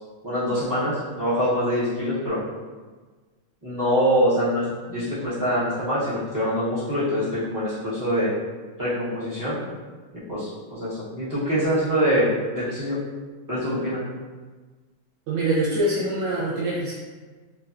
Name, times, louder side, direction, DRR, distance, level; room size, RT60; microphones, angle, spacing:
voice 1, 0.2-2.4 3.6-8.3 8.8-9.6 10.3-13.0 13.5-14.0, equal, 25° right, -13 dB, 0.4 m, -24 dB
voice 2, 15.3-16.9, right 1 dB, 75° right, -6 dB, 1.2 m, -24 dB
3.2 x 2.2 x 2.5 m, 1.4 s
omnidirectional pair, 2.1 m